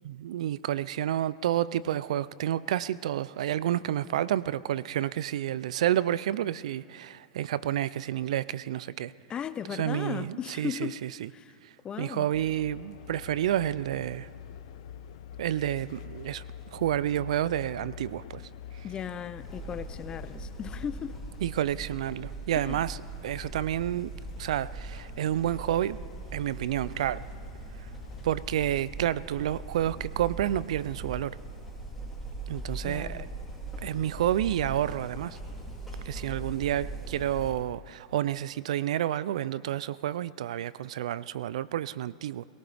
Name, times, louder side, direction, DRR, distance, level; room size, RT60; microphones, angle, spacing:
voice 1, 0.0-9.1 9.7-11.3 12.0-14.3 15.4-16.4 16.7-18.4 21.4-23.0 23.2-24.1 24.4-26.0 26.3-27.2 28.2-31.4 32.5-33.3 33.8-35.4 36.1-42.4, right 12 dB, 75° right, 0.4 m, -30 dB
voice 2, 9.3-11.0 11.3-11.6 11.8-12.3 18.8-21.2 22.6-22.8 32.8-33.3, left 8 dB, 25° left, 0.5 m, -36 dB
sound 1, 12.3-28.8, left 9 dB, 65° left, 0.7 m, -47 dB
sound 2, 19.4-37.5, right 2 dB, ahead, 5.5 m, -40 dB
20.5 x 18.5 x 3.5 m
hypercardioid pair, 120°, 4 cm